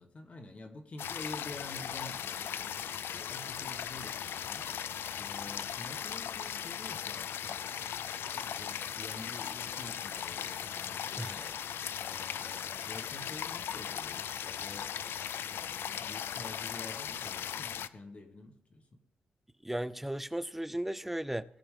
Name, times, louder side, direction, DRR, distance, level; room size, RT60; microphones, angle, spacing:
voice 1, 0.0-4.9 5.2-11.6 12.0-15.0 15.5-19.0, left 2 dB, 35° left, 1.2 m, -49 dB
sound 1, 1.0-17.9, left 9 dB, 75° left, 0.4 m, -38 dB
voice 2, 11.2-11.5 19.6-21.4, right 1 dB, 5° right, 0.3 m, -35 dB
19.0 x 7.0 x 3.7 m
wide cardioid pair, 165°, 4 cm